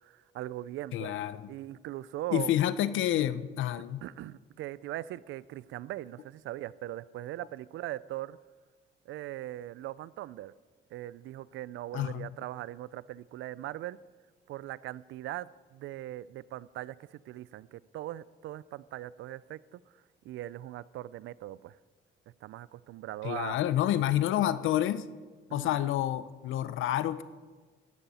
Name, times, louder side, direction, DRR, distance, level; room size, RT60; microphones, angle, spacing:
voice 1, 0.0-1.2 1.5-2.5 4.0-8.4 9.1-10.5 10.9-14.0 14.5-19.8 20.2-21.8 22.4-23.6 25.5-25.7, right 14 dB, 80° right, 19 dB, 0.4 m, -40 dB
voice 2, 0.9-1.5 2.3-4.0 11.9-12.3 23.2-25.0 25.5-27.2, left 12 dB, 80° left, 14 dB, 0.6 m, -29 dB
13.5 x 11.5 x 4.2 m, 1.4 s
cardioid pair, 90°, 20 cm